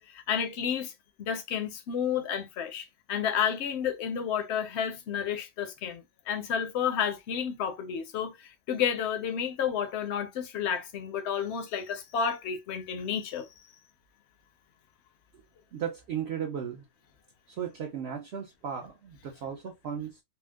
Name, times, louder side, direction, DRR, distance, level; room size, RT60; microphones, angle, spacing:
voice 1, 0.1-0.9 1.2-13.5, left 8 dB, 60° left, 0.8 m, -31 dB
voice 2, 15.7-16.8 17.5-20.2, right 8 dB, 60° right, 0.7 m, -36 dB
4.3 x 2.0 x 2.2 m
omnidirectional pair, 1.4 m